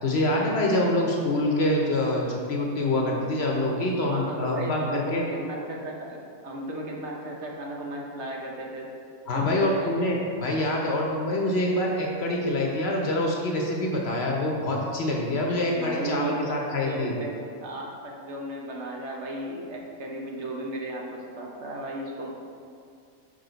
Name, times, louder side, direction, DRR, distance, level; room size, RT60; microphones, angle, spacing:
voice 1, 0.0-5.2 9.3-17.1, left 1 dB, 55° left, -1 dB, 0.9 m, -25 dB
voice 2, 4.0-8.9 9.3-10.0 15.7-16.6 16.9-22.3, right 1 dB, 60° right, -1 dB, 1.1 m, -35 dB
6.4 x 5.0 x 3.9 m, 2.4 s
omnidirectional pair, 1.4 m